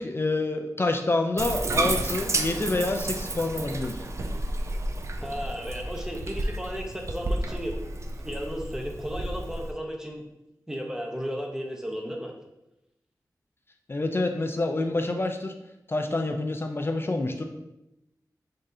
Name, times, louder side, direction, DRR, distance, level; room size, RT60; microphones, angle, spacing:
voice 1, 0.0-4.0 13.9-15.5 15.9-17.4, left 2 dB, 35° left, 5 dB, 0.3 m, -27 dB
Bathtub (filling or washing), 1.4-9.7, right 2 dB, 45° right, 0.4 m, -31 dB
voice 2, 5.2-7.8 8.1-10.2 10.7-12.3, equal, 10° right, 1 dB, 0.7 m, -34 dB
4.0 x 3.6 x 2.6 m, 0.89 s
wide cardioid pair, 70°, 7 cm